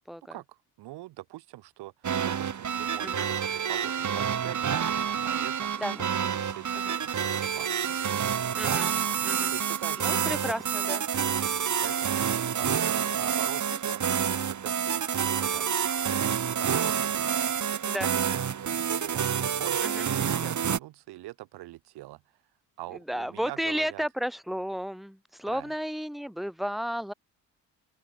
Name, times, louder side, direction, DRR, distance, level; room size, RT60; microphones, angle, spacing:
voice 1, 0.3-5.8 6.2-8.8 9.1-10.4 11.8-14.0 14.5-15.7 16.5-22.2 22.8-24.0 25.5-25.7, right 17 dB, 90° right, 6.7 m, -44 dB
sound 1, 2.0-20.8, right 8 dB, 50° right, 2.1 m, -28 dB
voice 2, 8.6-8.9 9.2-9.5 10.0-11.5 17.9-18.1 19.8-20.0 23.1-27.1, equal, ahead, 1.7 m, -33 dB
open air
supercardioid pair, 70°, 38 cm